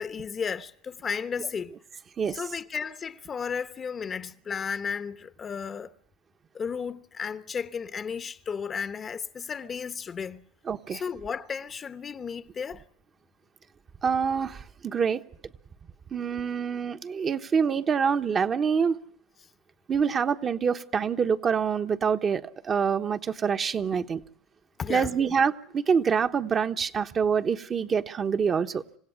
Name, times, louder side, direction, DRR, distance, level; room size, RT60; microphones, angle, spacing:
voice 1, 0.0-1.7 2.3-5.9 6.5-10.4 10.9-12.8 24.8-25.1, left 6 dB, 30° left, 1.0 m, -34 dB
voice 2, 10.7-11.0 14.0-15.2 16.1-19.0 19.9-24.2 24.9-28.8, right 6 dB, 30° right, 1.1 m, -26 dB
27.0 x 16.5 x 9.6 m
supercardioid pair, 105°, 0 cm